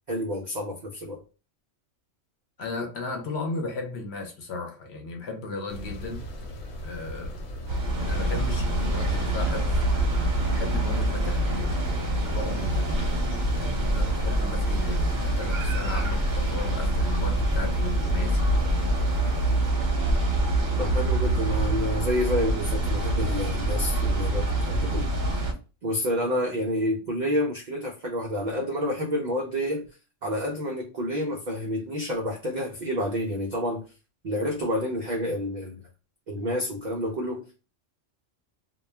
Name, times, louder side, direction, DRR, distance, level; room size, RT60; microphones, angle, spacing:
voice 1, 0.1-1.2 20.8-25.1 25.8-29.9 30.2-33.8 34.2-35.8 36.3-37.6, equal, 80° right, 0.4 m, -29 dB
voice 2, 2.6-6.3 6.8-7.5 8.1-9.8 10.5-13.0 13.5-18.5, left 3 dB, 60° left, 0.8 m, -36 dB
sound 1, 5.7-19.7, equal, 80° left, 1.1 m, -38 dB
sound 2, 7.7-25.5, right 1 dB, 45° right, 0.7 m, -25 dB
2.2 x 2.2 x 3.2 m
omnidirectional pair, 1.3 m